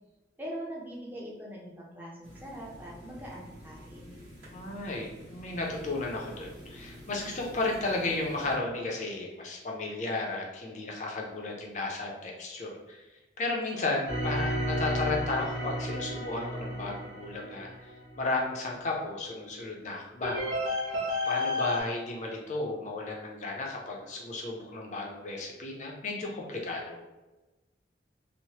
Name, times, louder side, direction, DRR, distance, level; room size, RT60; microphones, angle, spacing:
voice 1, 0.4-4.1, equal, 10° right, -4 dB, 0.6 m, -42 dB
sound 1, 2.2-8.6, equal, 60° right, 1.1 m, -48 dB
voice 2, 4.5-13.0 13.4-17.9 18.2-20.4 21.2-27.0, left 2 dB, 40° left, -1 dB, 0.5 m, -34 dB
sound 2, 14.1-18.2 20.2-21.8, left 1 dB, 85° right, 0.9 m, -32 dB
3.1 x 2.1 x 2.8 m, 1.1 s
head